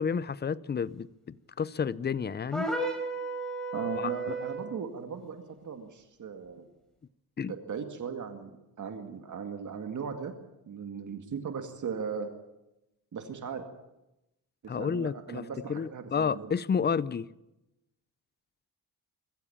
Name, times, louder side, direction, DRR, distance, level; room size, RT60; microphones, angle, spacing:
voice 1, 0.0-2.7 3.9-4.1 7.4-7.5 14.7-15.4 15.7-17.3, left 6 dB, 25° left, 0.6 m, -30 dB
sound 1, 2.5-4.7, right 2 dB, ahead, 5.4 m, -33 dB
voice 2, 3.7-6.7 7.4-10.3 10.7-12.3 13.1-13.7 14.6-16.5, right 6 dB, 50° right, 2.2 m, -38 dB
22.5 x 15.0 x 8.7 m
cardioid pair, 105°, 37 cm